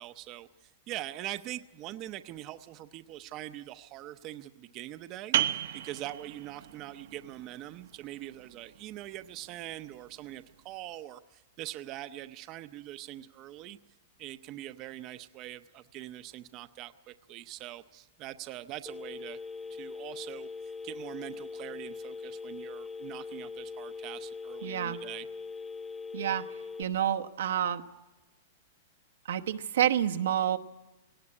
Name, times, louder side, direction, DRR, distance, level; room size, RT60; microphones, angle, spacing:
voice 1, 0.0-5.4 5.7-13.8 14.2-19.4 19.7-25.3, right 14 dB, 35° right, 10 dB, 0.6 m, -43 dB
sound 1, 5.3-10.7, right 12 dB, 65° right, 0.9 m, -36 dB
Telephone, 18.9-26.8, left 5 dB, 10° left, 1.1 m, -41 dB
voice 2, 24.6-25.0 26.1-26.4 26.8-27.8 29.3-30.6, right 10 dB, 85° right, 5 dB, 1.1 m, -28 dB
18.0 x 18.0 x 9.7 m, 1.1 s
supercardioid pair, 155°, 0 cm